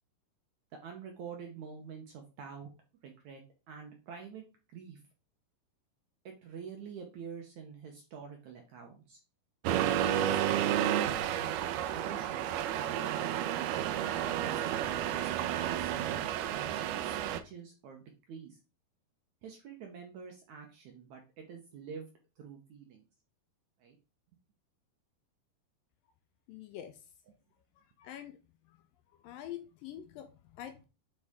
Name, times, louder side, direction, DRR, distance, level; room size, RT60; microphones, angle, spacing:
voice 1, 0.8-2.7 3.0-4.5 4.7-5.0 6.3-9.2 9.7-11.6 11.9-12.5 12.9-16.7 17.0-18.6 19.4-22.1 22.4-23.0 23.8-24.0, right 6 dB, 70° right, 3 dB, 1.8 m, -47 dB
Accelerating revving vroom, 9.7-17.4, right 11 dB, 85° right, 2.6 m, -31 dB
voice 2, 26.5-27.0 28.0-28.4 28.7-28.8 29.2-30.9, left 11 dB, 80° left, 8 dB, 2.1 m, -45 dB
7.9 x 4.8 x 3.6 m, 0.32 s
omnidirectional pair, 4.4 m